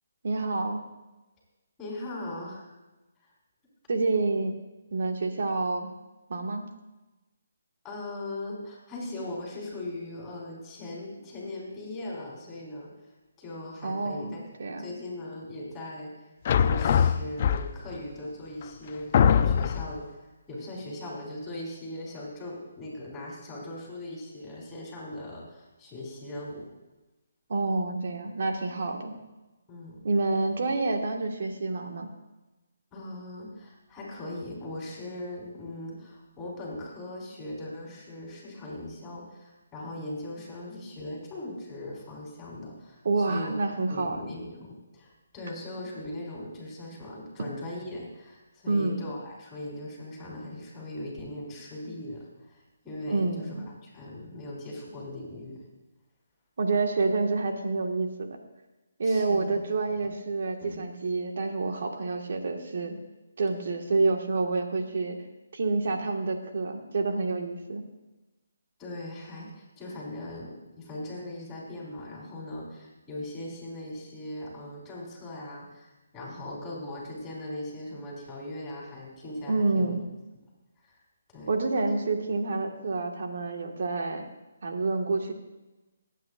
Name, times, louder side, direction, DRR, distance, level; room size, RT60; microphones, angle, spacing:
voice 1, 0.2-0.8 3.9-4.6 4.9-5.9 6.3-6.6 13.8-14.9 27.5-29.2 30.0-32.1 43.0-44.2 48.7-49.0 53.1-53.6 56.6-58.4 59.0-63.0 63.4-65.2 65.5-67.8 79.5-80.0 81.5-84.2 84.6-85.3, right 3 dB, 60° right, 3 dB, 1.7 m, -28 dB
voice 2, 1.8-2.7 7.8-12.9 13.4-14.4 14.7-16.1 16.6-26.7 29.7-30.0 32.9-43.5 43.9-55.6 59.0-60.1 60.6-60.8 68.8-79.9 80.8-80.9 81.3-81.5, left 1 dB, 15° left, -4 dB, 4.3 m, -39 dB
sound 1, 16.4-18.0 18.6-18.7 19.1-20.0, left 8 dB, 40° left, 0.5 m, -22 dB
23.0 x 9.3 x 2.5 m, 1.1 s
figure-of-eight pair, 150°, 0 cm